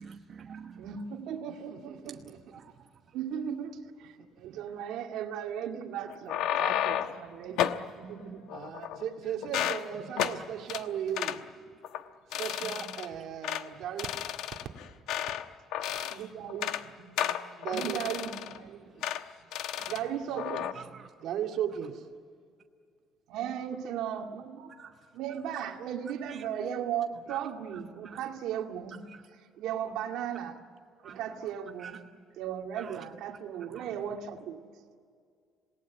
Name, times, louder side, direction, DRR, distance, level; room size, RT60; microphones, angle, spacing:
voice 1, 0.0-0.8 2.5-2.6 15.9-16.1 19.8-19.9 20.8-21.1 24.8-24.9 27.3-27.4 31.0-31.2 31.8-31.9 32.8-32.9 33.8-33.9, right 6 dB, 35° right, 1.1 m, -46 dB
voice 2, 0.7-2.4 3.1-8.5 12.6-12.9 16.1-16.8 17.0-17.4 17.7-18.9 19.9-20.7 21.3-21.4 23.3-24.7 25.1-30.6 31.0-34.6, right 9 dB, 80° right, 2.1 m, -37 dB
voice 3, 1.7-2.8 4.2-4.6 8.5-11.5 12.3-14.1 17.5-18.1 18.8-19.0 19.4-19.5 20.3-20.4 21.2-21.9, right 9 dB, 65° right, 2.5 m, -37 dB
sound 1, 6.1-7.2 7.6-7.8 8.5-9.1 9.4-9.8 10.2-10.4 10.7-10.8 11.2-11.4 11.8-12.0 12.3-13.1 13.4-13.6 14.0-15.4 15.7-16.2 16.5-16.8 17.2-18.6 19.0-19.2 19.5-20.0 20.4-20.7, left 11 dB, 80° left, 1.1 m, -32 dB
27.5 x 18.5 x 9.4 m
cardioid pair, 145°, 0 cm